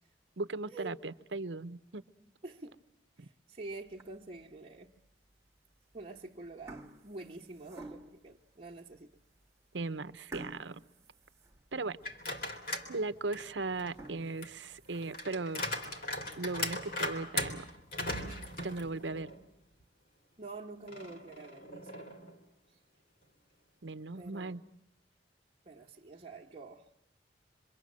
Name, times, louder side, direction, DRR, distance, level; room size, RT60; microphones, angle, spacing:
voice 1, 0.4-2.0 3.2-3.3 9.7-10.8 11.7-12.0 12.9-15.6 16.4-17.7 18.6-19.3 23.8-24.6, right 3 dB, 80° right, 0.9 m, -37 dB
voice 2, 2.4-2.8 3.2-5.0 5.9-9.1 20.4-22.1 24.1-24.6 25.6-26.9, right 3 dB, 35° right, 1.4 m, -47 dB
sound 1, 3.9-4.4 5.0-5.1 5.9-6.2 6.4-8.3 8.9-9.0 9.4-9.5 10.3-12.1 12.5-12.6 13.1-13.2 13.8-15.4 15.9-16.0 16.4-16.5 16.8-16.9 17.2-17.3 18.2-18.8, right 2 dB, 15° right, 1.4 m, -51 dB
sound 2, 12.0-12.9 13.3-19.4 19.8-19.9 20.9-22.3, left 2 dB, 50° left, 3.3 m, -39 dB
26.0 x 24.5 x 7.5 m
head